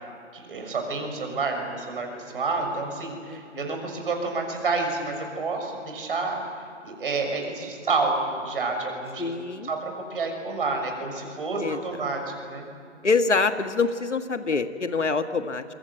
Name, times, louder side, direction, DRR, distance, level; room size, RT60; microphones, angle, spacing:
voice 1, 0.3-6.4 6.8-9.3 9.6-12.7, right 3 dB, 45° right, 3 dB, 6.4 m, -29 dB
voice 2, 3.3-3.7 9.2-9.7 11.6-11.8 13.0-15.6, left 4 dB, 70° left, 9 dB, 1.7 m, -25 dB
27.5 x 23.5 x 8.0 m, 2.3 s
figure-of-eight pair, 145°, 37 cm